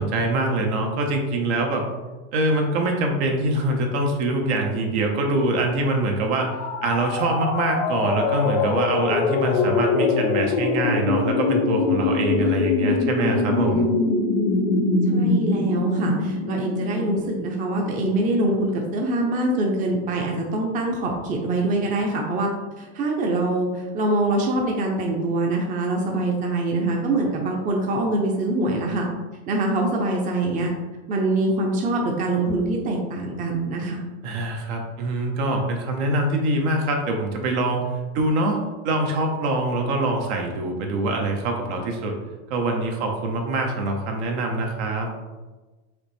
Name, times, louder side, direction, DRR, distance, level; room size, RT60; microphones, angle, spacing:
voice 1, 0.0-1.8 2.3-6.5 6.8-13.9 34.2-37.8 38.1-42.1 42.5-45.1, right 2 dB, 70° right, 2 dB, 1.1 m, -24 dB
sound 1, 6.4-18.2, left 3 dB, 70° left, 0.7 m, -23 dB
voice 2, 15.1-22.5 22.8-29.1 29.5-30.7 31.1-34.0, right 2 dB, 25° right, 0 dB, 0.6 m, -24 dB
4.9 x 3.0 x 3.3 m, 1.2 s
supercardioid pair, 145°, 35 cm